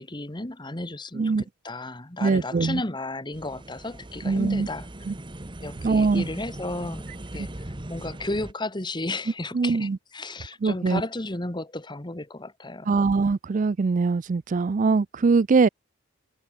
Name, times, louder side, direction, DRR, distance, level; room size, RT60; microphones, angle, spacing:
voice 1, 0.0-4.9 5.6-7.0 7.3-13.0, left 2 dB, 25° left, 1.7 m, -33 dB
voice 2, 2.2-2.8 4.2-4.7 5.0-5.1 5.8-6.3 9.5-10.0 10.6-11.0 12.9-15.7, right 4 dB, 40° right, 0.4 m, -22 dB
sound 1, 3.3-8.5, right 1 dB, 25° right, 1.3 m, -39 dB
head